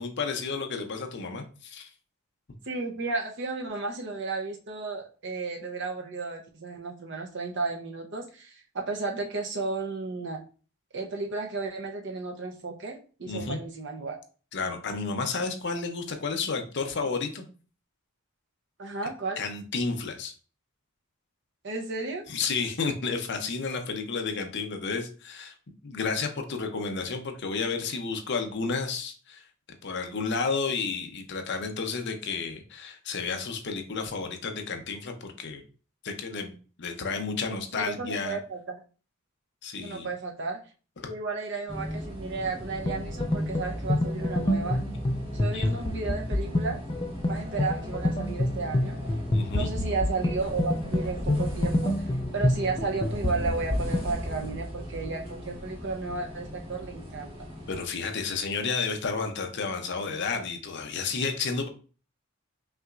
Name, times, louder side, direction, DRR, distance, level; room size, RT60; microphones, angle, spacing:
voice 1, 0.0-1.9 13.3-13.6 14.5-17.4 19.4-20.3 22.3-25.5 25.8-29.4 29.8-35.6 36.0-36.5 36.8-38.4 39.6-40.1 41.0-41.1 45.5-45.7 49.3-49.7 57.7-61.7, left 4 dB, 55° left, 5 dB, 0.7 m, -31 dB
voice 2, 2.7-10.4 10.9-14.2 18.8-19.4 21.6-22.2 37.7-38.8 39.8-40.6 41.1-44.8 45.3-46.8 47.3-49.0 49.5-52.0 52.3-57.3, right 3 dB, 55° right, 2 dB, 0.7 m, -33 dB
sound 1, 41.7-57.8, equal, 25° right, 1.3 m, -38 dB
sound 2, 42.9-54.1, left 1 dB, 20° left, 0.4 m, -28 dB
5.6 x 2.9 x 2.5 m, 0.38 s
head